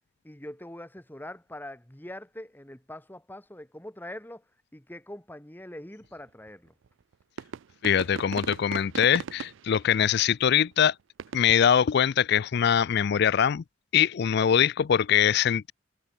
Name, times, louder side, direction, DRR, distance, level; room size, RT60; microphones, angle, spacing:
voice 1, 0.2-4.4 4.7-6.7, left 1 dB, 10° left, 1.7 m, -43 dB
sound 1, 6.5-6.6 7.4-10.2 10.7-10.8 11.2-11.4, right 6 dB, 70° right, 0.4 m, -38 dB
voice 2, 7.8-10.9 11.3-13.6 13.9-15.7, left 8 dB, 55° left, 0.4 m, -23 dB
head